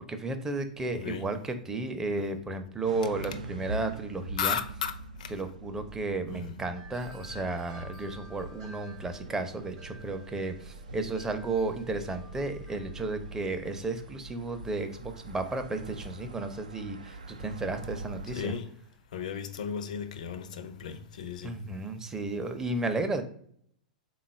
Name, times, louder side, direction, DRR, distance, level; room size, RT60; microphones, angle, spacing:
voice 1, 0.1-4.6 5.3-18.5 21.4-23.2, right 2 dB, 15° right, 0.5 m, -33 dB
voice 2, 0.9-1.3 2.2-2.3 4.4-4.9 5.2-5.3 6.3-6.6 18.3-18.7 19.1-21.6, left 7 dB, 70° left, 0.5 m, -34 dB
sound 1, 2.8-18.6, right 2 dB, 85° right, 0.4 m, -44 dB
Wind chime, 6.7-13.5, right 2 dB, 55° right, 0.6 m, -52 dB
3.6 x 2.3 x 4.1 m
hypercardioid pair, 110°, 4 cm